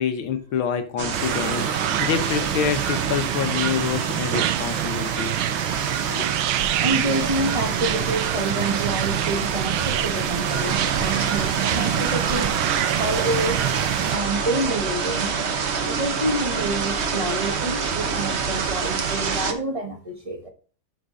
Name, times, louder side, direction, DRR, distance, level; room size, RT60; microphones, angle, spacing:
voice 1, 0.0-5.4, left 8 dB, 85° left, 1.9 m, -27 dB
sound 1, 1.0-19.5, right 5 dB, 50° right, 0.9 m, -27 dB
sound 2, 1.1-14.2, right 13 dB, 85° right, 1.4 m, -26 dB
voice 2, 6.8-12.6 13.0-13.6 14.1-15.3 15.8-20.5, right 1 dB, 20° right, 1.0 m, -28 dB
11.5 x 4.6 x 3.8 m
omnidirectional pair, 2.2 m